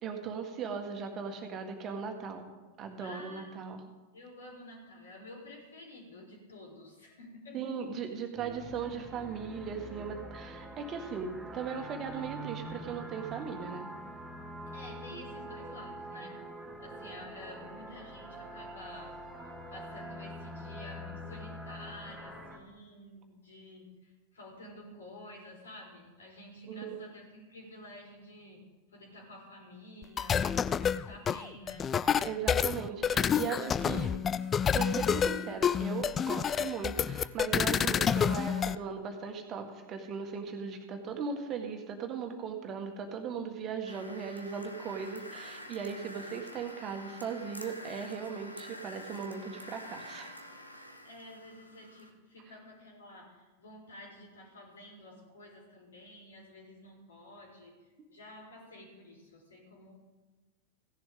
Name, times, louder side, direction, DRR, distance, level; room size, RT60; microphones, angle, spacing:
voice 1, 0.0-2.5 2.8-3.8 7.5-13.9 26.7-27.0 32.2-34.1 34.7-50.4, right 6 dB, 30° right, 4 dB, 1.7 m, -38 dB
voice 2, 3.0-3.6 4.1-7.6 14.7-16.3 16.8-19.1 19.7-28.6 28.9-30.5 30.9-32.0 33.1-33.6 51.0-57.7 58.1-59.9, left 1 dB, 70° left, -1 dB, 4.2 m, -50 dB
sound 1, 8.3-22.6, right 1 dB, 10° right, 1.7 m, -45 dB
sound 2, 30.0-38.8, left 8 dB, 25° left, 0.3 m, -29 dB
sound 3, 43.9-52.1, left 1 dB, 85° left, 1.1 m, -48 dB
16.5 x 10.5 x 3.8 m, 1.2 s
figure-of-eight pair, 90°, 0 cm